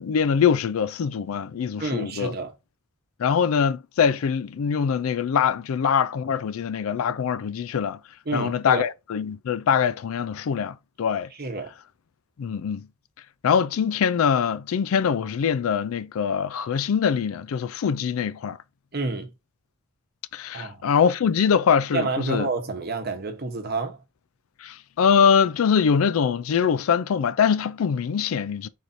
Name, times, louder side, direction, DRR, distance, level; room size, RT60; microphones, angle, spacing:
voice 1, 0.0-2.3 3.2-8.0 8.3-11.3 12.4-12.9 13.4-18.6 20.3-22.5 24.6-28.7, left 7 dB, 75° left, 0.4 m, -23 dB
voice 2, 1.8-2.5 8.3-8.8 11.4-11.7 18.9-19.3 20.5-20.8 21.9-24.0, right 3 dB, 45° right, 0.9 m, -29 dB
4.7 x 2.6 x 4.0 m
head